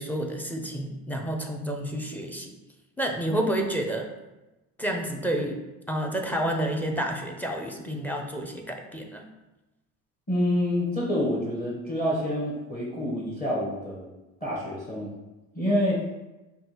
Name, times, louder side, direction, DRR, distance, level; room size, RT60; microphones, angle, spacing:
voice 1, 0.0-2.5 3.0-4.1 4.8-5.6 5.9-9.3, right 1 dB, 5° left, 3 dB, 0.5 m, -29 dB
voice 2, 10.3-14.1 14.4-15.1 15.5-16.0, left 1 dB, 25° left, -5 dB, 1.2 m, -27 dB
5.2 x 2.4 x 3.0 m, 1.0 s
supercardioid pair, 85°, 37 cm